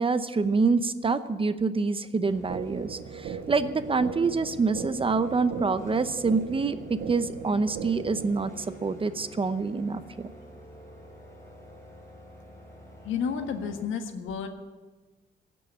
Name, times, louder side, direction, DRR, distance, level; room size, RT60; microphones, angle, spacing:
voice 1, 0.0-10.3, right 4 dB, 25° right, 12 dB, 0.8 m, -26 dB
sound 1, 2.3-13.8, right 1 dB, 15° left, 4.7 m, -49 dB
sound 2, 2.5-8.5, right 7 dB, 70° right, 1.3 m, -39 dB
voice 2, 13.0-14.5, left 6 dB, 80° left, 6 dB, 1.5 m, -31 dB
16.0 x 6.3 x 9.5 m, 1.3 s
cardioid pair, 90°, 20 cm